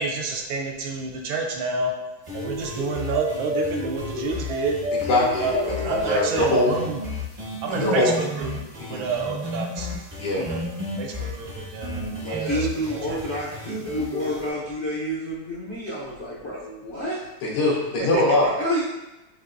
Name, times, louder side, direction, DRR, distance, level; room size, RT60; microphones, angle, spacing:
voice 1, 0.0-1.9 2.3-4.8 5.4-7.0 7.6-8.5 8.9-9.9 10.3-10.6 11.0-13.2 18.0-18.2, right 3 dB, 75° right, 1 dB, 1.4 m, -28 dB
sound 1, 2.2-14.5, left 2 dB, 40° right, 0.4 m, -32 dB
voice 2, 4.9-6.7 7.7-8.1 8.8-9.0 10.2-10.5 12.2-12.5 17.4-18.5, left 2 dB, 85° left, -4 dB, 2.0 m, -23 dB
voice 3, 12.4-17.2 18.6-18.8, equal, 65° left, -8 dB, 0.6 m, -29 dB
7.2 x 2.9 x 2.5 m, 1.0 s
omnidirectional pair, 2.3 m